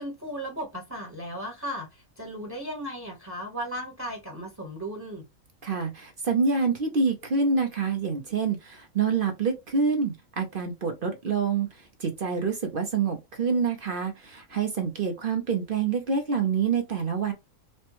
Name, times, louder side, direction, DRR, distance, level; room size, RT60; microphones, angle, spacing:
voice 1, 0.0-5.2, equal, 15° right, 0.9 m, -36 dB
voice 2, 5.6-17.3, right 5 dB, 50° right, 0.8 m, -27 dB
4.2 x 2.2 x 2.9 m
omnidirectional pair, 1.5 m